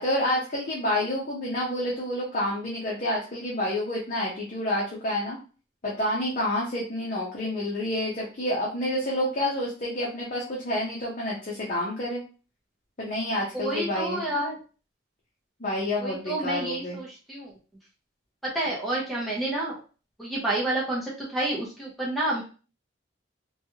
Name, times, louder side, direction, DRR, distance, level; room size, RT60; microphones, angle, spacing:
voice 1, 0.0-5.4 5.8-12.2 13.0-14.2 15.6-17.0, left 1 dB, 40° left, -4 dB, 0.7 m, -29 dB
voice 2, 13.5-14.5 16.0-17.5 18.4-19.7 20.2-22.4, right 1 dB, ahead, -4 dB, 0.7 m, -29 dB
3.0 x 2.3 x 2.8 m, 0.36 s
head